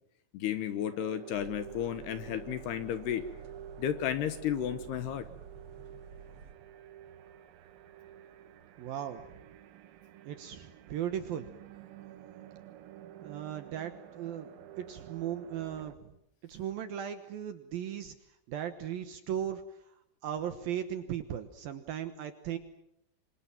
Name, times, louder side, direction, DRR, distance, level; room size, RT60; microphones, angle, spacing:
voice 1, 0.3-3.2 3.8-5.3, left 10 dB, 70° left, 11 dB, 2.8 m, -33 dB
sound 1, 0.9-16.0, right 10 dB, 90° right, 4.1 m, -50 dB
sound 2, 1.3-6.5, right 5 dB, 30° right, 3.4 m, -50 dB
voice 2, 8.8-9.3 10.2-11.5 13.2-14.5 14.8-16.1 16.4-18.1 18.5-19.6 20.2-22.6, right 10 dB, 70° right, 9 dB, 2.3 m, -37 dB
26.5 x 26.0 x 7.5 m, 0.77 s
omnidirectional pair, 5.7 m